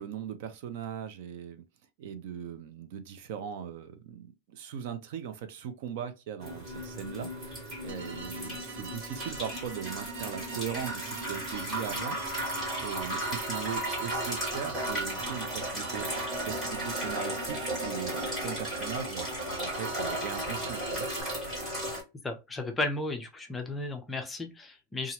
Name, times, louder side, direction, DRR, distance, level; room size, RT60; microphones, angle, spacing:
voice 1, 0.0-1.6 2.0-12.2 12.6-16.1 16.3-21.1, right 8 dB, 55° right, 0.5 m, -39 dB
sound 1, 6.4-22.0, right 1 dB, 15° right, 1.7 m, -35 dB
sound 2, 7.9-21.2, right 5 dB, 85° right, 0.9 m, -43 dB
voice 2, 22.2-25.1, left 2 dB, 10° left, 0.4 m, -34 dB
2.9 x 2.4 x 2.8 m
supercardioid pair, 170°, 0 cm